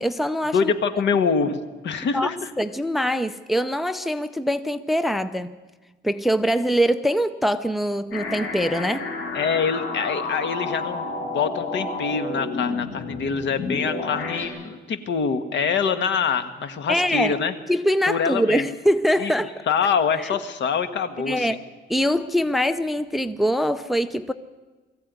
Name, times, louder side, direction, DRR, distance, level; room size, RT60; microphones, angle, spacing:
voice 1, 0.0-0.7 2.1-5.5 6.0-9.1 16.9-17.4 17.7-19.6 20.2-20.3 21.3-21.6 21.9-24.3, equal, ahead, 0.6 m, -23 dB
voice 2, 0.5-2.5 9.3-17.5 18.1-18.6 19.2-19.3 19.7-21.5, left 6 dB, 65° left, 1.7 m, -25 dB
sound 1, 8.1-14.4, left 3 dB, 85° left, 4.8 m, -30 dB
22.0 x 15.0 x 9.5 m
cardioid pair, 145°, 20 cm